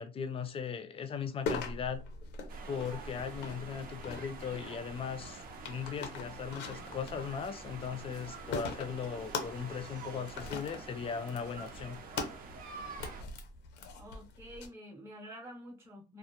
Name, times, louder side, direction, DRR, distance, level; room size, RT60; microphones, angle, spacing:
voice 1, 0.0-2.0 2.7-12.0, left 6 dB, 35° left, 0.4 m, -38 dB
sound 1, 1.5-14.7, left 4 dB, 85° left, 0.6 m, -42 dB
sound 2, 2.5-13.2, right 5 dB, 60° right, 0.6 m, -48 dB
voice 2, 14.0-16.2, equal, 15° right, 0.7 m, -48 dB
2.3 x 2.1 x 2.8 m
cardioid pair, 110°, 17 cm